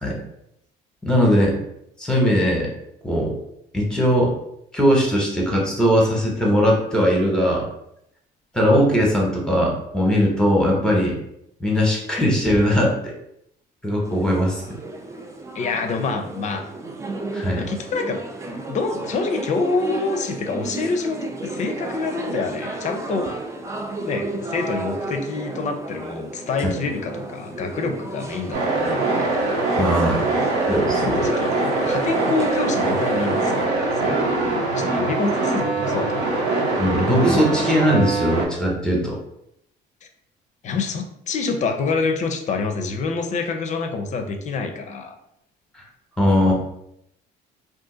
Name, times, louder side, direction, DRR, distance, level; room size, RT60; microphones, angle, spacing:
voice 1, 1.0-1.5 2.0-2.7 3.0-3.3 3.7-4.3 4.7-7.7 8.5-11.2 11.6-13.1 13.8-14.6 17.3-17.6 29.8-30.3 30.7-31.2 36.8-39.2 46.2-46.5, equal, 5° left, -2 dB, 0.9 m, -19 dB
sound 1, 14.0-33.7, right 2 dB, 15° right, 0.3 m, -33 dB
voice 2, 15.5-16.6 17.6-23.3 24.0-29.4 30.3-30.5 31.1-31.5 31.8-36.6 40.6-45.1, left 4 dB, 45° left, 5 dB, 0.5 m, -27 dB
sound 2, 28.5-38.4, right 3 dB, 70° right, 0.9 m, -23 dB
2.6 x 2.5 x 3.7 m, 0.76 s
cardioid pair, 110°, 17 cm